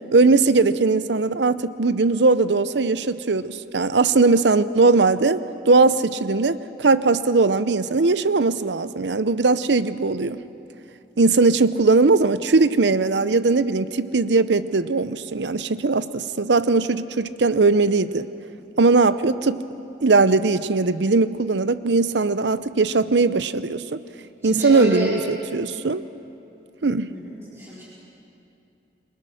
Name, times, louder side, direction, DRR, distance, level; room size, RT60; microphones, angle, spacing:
voice 1, 0.1-10.4 11.2-18.3 18.8-19.6 20.0-24.0 24.4-26.0 26.8-27.1, right 3 dB, 80° right, 14 dB, 0.7 m, -19 dB
voice 2, 24.4-25.1 27.1-27.8, right 1 dB, 15° right, -8 dB, 4.2 m, -29 dB
28.5 x 23.0 x 6.4 m, 2.8 s
head